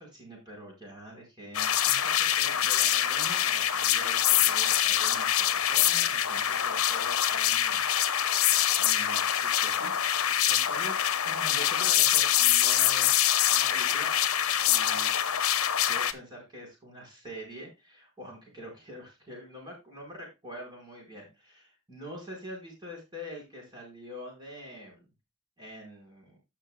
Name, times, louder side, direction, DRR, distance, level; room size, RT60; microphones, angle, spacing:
voice 1, 0.0-7.9 8.8-9.9 10.5-14.1 14.7-15.1 15.8-25.0 25.6-26.4, equal, 20° right, -1 dB, 4.8 m, -45 dB
sound 1, 1.5-16.1, left 11 dB, 85° left, 0.8 m, -25 dB
15.5 x 6.2 x 2.3 m, 0.25 s
head